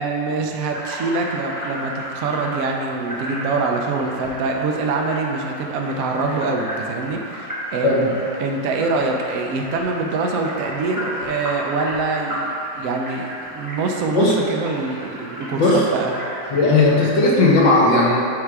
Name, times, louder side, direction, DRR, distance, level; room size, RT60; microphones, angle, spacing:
voice 1, 0.0-8.0 8.4-16.1, right 3 dB, 70° right, 1 dB, 0.8 m, -24 dB
sound 1, 0.7-17.6, equal, 15° right, 0.8 m, -33 dB
voice 2, 16.5-18.2, left 2 dB, 80° left, -3 dB, 1.7 m, -16 dB
7.3 x 3.3 x 4.7 m, 2.6 s
omnidirectional pair, 2.0 m